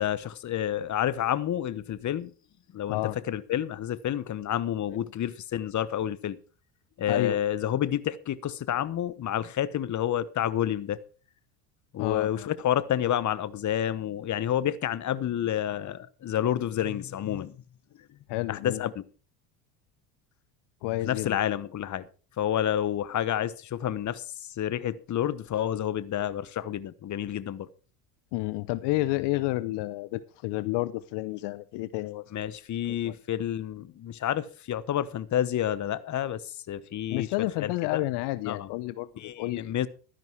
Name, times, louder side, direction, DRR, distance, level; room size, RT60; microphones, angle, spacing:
voice 1, 0.0-2.3 2.7-3.0 3.3-6.4 7.0-11.0 11.9-17.6 18.5-19.0 21.0-22.0 22.4-27.7 32.3-38.0 38.4-38.7 39.2-39.9, left 11 dB, 35° left, 1.1 m, -29 dB
voice 2, 7.1-7.4 12.0-12.5 18.3-18.8 20.8-21.4 28.3-32.2 33.1-33.2 37.1-39.7, left 18 dB, 60° left, 0.8 m, -30 dB
12.5 x 10.5 x 4.6 m
hypercardioid pair, 85°, 47 cm